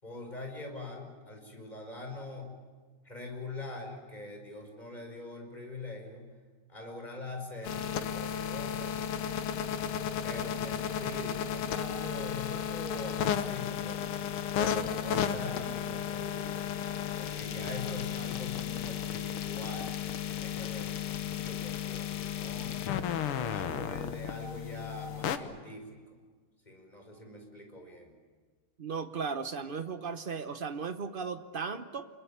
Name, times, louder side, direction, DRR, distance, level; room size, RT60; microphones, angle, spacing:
voice 1, 0.0-2.6 3.0-6.3 6.7-9.0 10.2-14.0 14.6-16.6 17.2-20.9 21.2-22.8 23.4-26.0 26.7-28.2, left 2 dB, 20° left, 3 dB, 5.5 m, -43 dB
sound 1, 7.6-25.4, left 9 dB, 90° left, 2.1 m, -34 dB
voice 2, 28.8-32.1, right 5 dB, 80° right, 9 dB, 0.4 m, -36 dB
27.5 x 22.0 x 8.8 m, 1.4 s
omnidirectional pair, 2.4 m